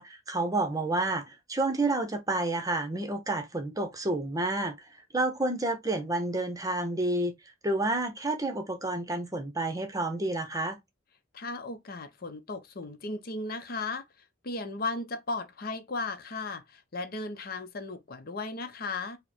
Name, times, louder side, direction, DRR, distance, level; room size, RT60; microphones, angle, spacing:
voice 1, 0.0-4.7 5.1-7.3 7.6-10.8, right 2 dB, 20° right, 0.8 m, -29 dB
voice 2, 11.3-14.0 14.4-19.2, left 3 dB, 50° left, 0.7 m, -36 dB
4.9 x 2.1 x 4.3 m
head